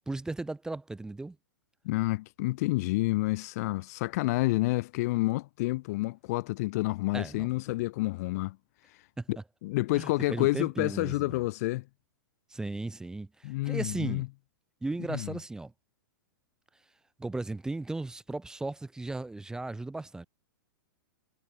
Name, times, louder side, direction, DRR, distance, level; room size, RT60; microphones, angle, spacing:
voice 1, 0.1-1.4 7.1-7.5 9.2-9.4 9.9-11.4 12.5-14.3 14.8-15.7 17.2-20.3, right 2 dB, 5° right, 0.7 m, -36 dB
voice 2, 1.8-8.6 9.3-11.8 13.4-14.3 15.1-15.4, left 20 dB, 45° left, 0.5 m, -29 dB
figure-of-eight pair, 110°, 12 cm